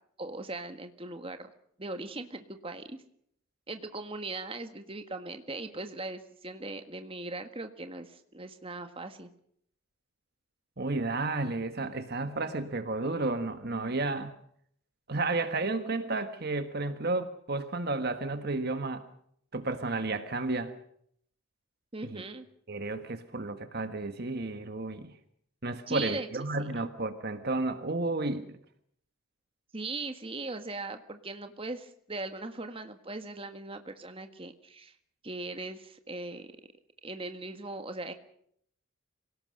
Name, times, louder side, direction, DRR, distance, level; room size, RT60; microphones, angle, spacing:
voice 1, 0.2-1.5 1.8-3.0 3.7-9.3 21.9-22.5 25.9-26.3 26.6-26.9 29.7-35.0 35.2-36.5 37.0-38.1, right 2 dB, 25° right, 7 dB, 1.6 m, -39 dB
voice 2, 10.8-14.3 15.1-19.0 19.5-20.7 22.0-22.2 22.7-25.1 25.6-28.6, right 2 dB, 45° right, 9 dB, 1.4 m, -32 dB
26.5 x 18.0 x 6.5 m, 0.67 s
head